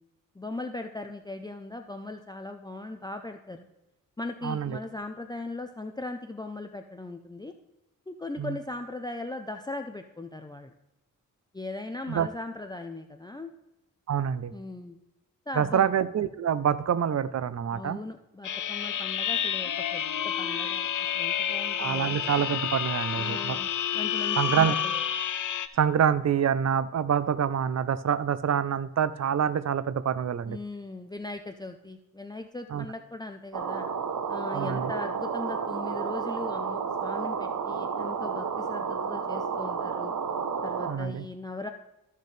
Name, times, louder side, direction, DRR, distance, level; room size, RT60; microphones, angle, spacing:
voice 1, 0.3-3.7 4.2-7.5 8.1-10.7 11.5-13.5 14.5-15.0 15.5-15.9 17.7-22.2 23.1-25.0 30.5-33.9 34.3-40.1 40.6-41.7, left 2 dB, 10° left, 6 dB, 0.6 m, -39 dB
voice 2, 4.4-4.8 8.4-8.5 12.1-12.3 14.1-14.5 15.6-18.0 21.8-23.6 24.4-24.7 25.8-30.6 32.7-32.8 34.5-34.9 40.9-41.2, right 8 dB, 50° right, 15 dB, 0.6 m, -26 dB
sound 1, 18.4-25.7, left 9 dB, 65° left, 0.7 m, -29 dB
sound 2, 33.5-40.9, right 6 dB, 70° right, 0.9 m, -31 dB
14.0 x 6.6 x 3.3 m, 0.92 s
cardioid pair, 85°, 33 cm